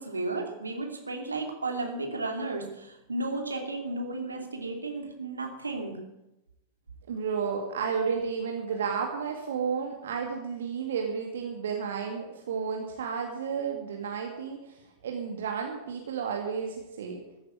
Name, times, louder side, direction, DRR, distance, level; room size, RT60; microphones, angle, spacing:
voice 1, 0.0-6.0, right 2 dB, 80° right, 3 dB, 2.8 m, -33 dB
voice 2, 7.1-17.2, right 6 dB, 60° right, 2 dB, 2.2 m, -32 dB
15.0 x 9.2 x 9.6 m, 0.93 s
figure-of-eight pair, 90°, 0 cm